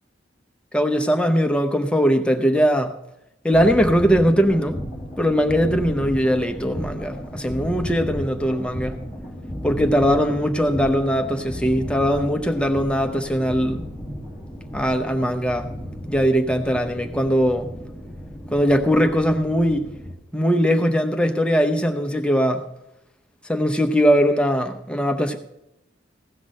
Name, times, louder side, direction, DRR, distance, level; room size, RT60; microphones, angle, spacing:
voice 1, 0.7-2.9 3.4-4.8 5.2-9.1 9.6-13.8 14.7-15.7 16.1-17.7 18.5-19.9 20.3-22.6 23.5-25.4, equal, 5° left, 6 dB, 0.7 m, -20 dB
sound 1, 3.5-20.1, equal, 15° right, 2.4 m, -34 dB
16.0 x 6.0 x 6.3 m, 0.86 s
head